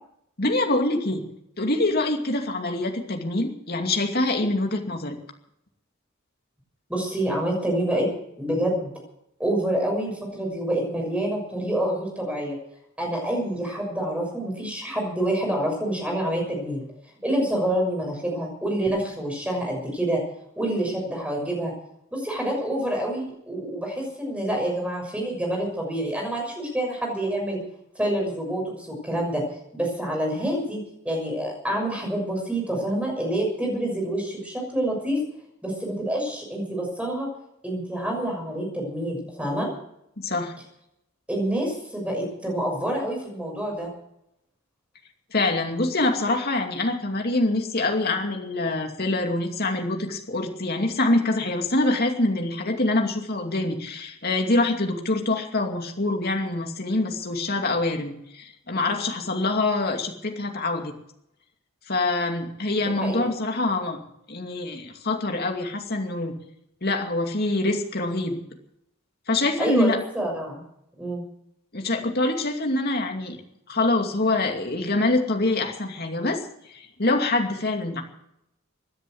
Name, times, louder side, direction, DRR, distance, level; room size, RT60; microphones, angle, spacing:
voice 1, 0.4-1.2 1.6-5.2 40.2-40.5 45.3-60.9 61.9-64.0 64.3-66.3 66.8-68.4 69.3-70.0 71.7-73.4 73.7-76.4 76.7-78.0, left 2 dB, 45° left, 3 dB, 2.5 m, -25 dB
voice 2, 6.9-8.1 8.4-8.9 9.4-12.6 13.0-16.8 17.2-20.2 20.6-21.7 22.1-27.6 27.9-29.4 29.7-30.8 31.0-35.2 35.6-37.3 37.6-39.7 41.3-43.9 62.8-63.3 69.6-70.6 71.0-71.2, right 1 dB, 5° right, 0 dB, 6.4 m, -27 dB
17.0 x 10.5 x 7.8 m, 0.79 s
head